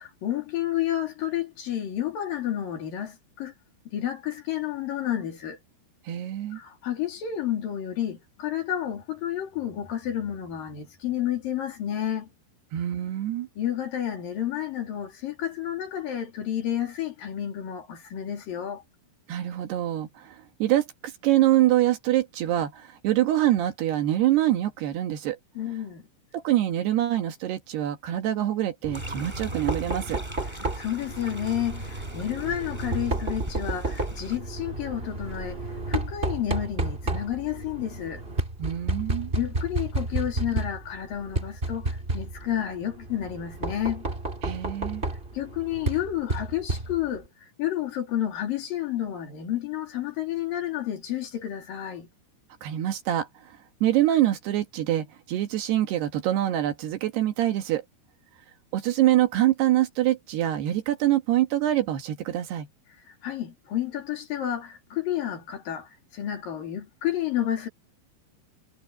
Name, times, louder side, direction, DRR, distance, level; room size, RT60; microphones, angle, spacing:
voice 1, 0.0-3.5 3.9-5.6 6.5-12.3 13.6-18.8 25.6-26.1 30.8-35.6 35.9-38.2 39.3-44.1 45.3-52.1 63.1-67.7, left 11 dB, 50° left, 4.3 m, -30 dB
voice 2, 6.1-6.6 12.7-13.5 19.3-25.4 26.3-30.2 38.6-39.3 44.4-45.0 52.6-57.8 58.7-62.7, right 13 dB, 65° right, 3.2 m, -25 dB
Knock, 28.8-47.3, right 2 dB, 30° right, 1.0 m, -32 dB
sound 1, 28.9-34.4, equal, 5° right, 7.8 m, -43 dB
omnidirectional pair, 5.4 m